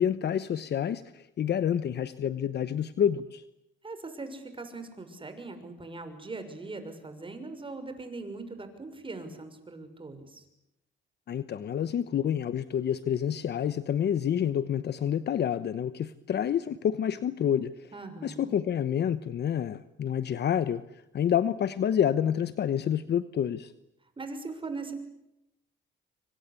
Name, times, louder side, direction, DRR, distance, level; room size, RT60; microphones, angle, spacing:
voice 1, 0.0-3.4 11.3-17.7 18.2-20.8 21.1-23.7, left 9 dB, 60° left, 14 dB, 1.0 m, -28 dB
voice 2, 3.8-10.4 17.9-18.5 24.2-24.9, right 3 dB, 25° right, 8 dB, 6.4 m, -40 dB
26.5 x 25.0 x 8.4 m, 0.86 s
cardioid pair, 90°, 20 cm